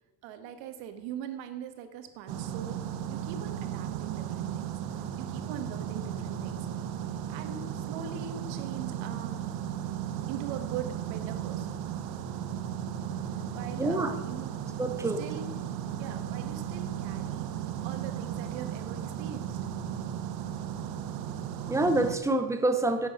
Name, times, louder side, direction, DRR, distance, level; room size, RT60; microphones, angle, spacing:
voice 1, 0.2-2.8 3.1-4.8 5.2-6.7 7.3-9.4 10.3-11.8 13.5-14.5 15.2-15.5 16.0-17.5 17.8-19.6, right 8 dB, 75° right, 8 dB, 1.7 m, -41 dB
sound 1, 2.3-22.2, right 9 dB, 50° right, 1.0 m, -35 dB
voice 2, 13.8-14.1 14.8-15.2 21.7-23.1, right 2 dB, 5° right, 8 dB, 0.6 m, -26 dB
11.0 x 8.2 x 6.2 m, 1.3 s
cardioid pair, 170°, 46 cm